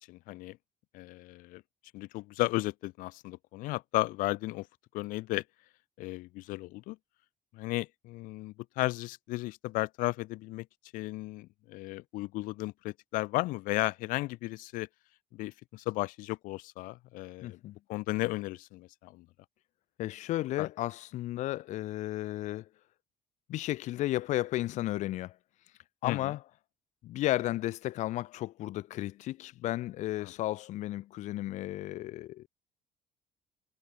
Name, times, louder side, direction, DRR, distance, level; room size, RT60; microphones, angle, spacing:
voice 1, 0.1-0.6 0.9-1.6 1.9-4.7 4.9-5.4 6.0-7.0 7.5-10.7 10.9-14.9 15.3-17.6 17.9-19.3 20.6-20.7 26.0-26.3 30.2-30.3, left 20 dB, 85° left, 2.8 m, -34 dB
voice 2, 17.4-17.8 20.0-22.7 23.5-25.4 26.0-26.4 27.0-32.5, left 15 dB, 60° left, 3.6 m, -33 dB
cardioid pair, 170°, 14 cm